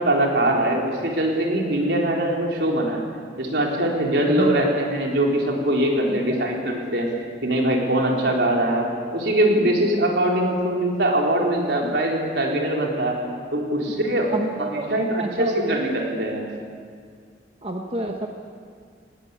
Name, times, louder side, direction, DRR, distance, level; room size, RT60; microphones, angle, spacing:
voice 1, 0.0-3.0 3.4-7.1 7.4-8.9 9.1-13.2 13.5-14.3 14.6-16.5, right 1 dB, 75° right, -1 dB, 4.1 m, -22 dB
voice 2, 4.3-4.6 6.1-6.5 11.7-11.9 14.3-14.9 15.2-15.8 17.6-18.3, right 1 dB, 30° right, 2 dB, 1.2 m, -28 dB
20.0 x 19.0 x 8.5 m, 2.1 s
head